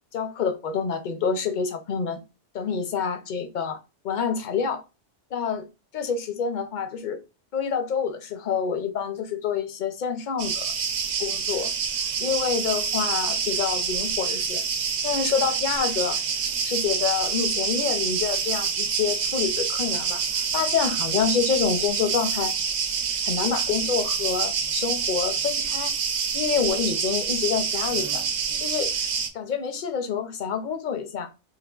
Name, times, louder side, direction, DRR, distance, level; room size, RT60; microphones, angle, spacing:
voice 1, 0.1-2.2 2.5-3.8 4.0-4.8 5.3-5.6 5.9-7.2 7.5-10.6 11.2-11.7 12.2-14.6 15.0-16.2 16.6-20.2 20.5-22.5 23.2-25.9 26.3-28.2 28.6-28.9 29.3-31.3, left 6 dB, 55° left, 0.6 m, -27 dB
sound 1, 10.4-29.3, right 6 dB, 85° right, 1.0 m, -27 dB
4.1 x 2.9 x 2.3 m
omnidirectional pair, 1.2 m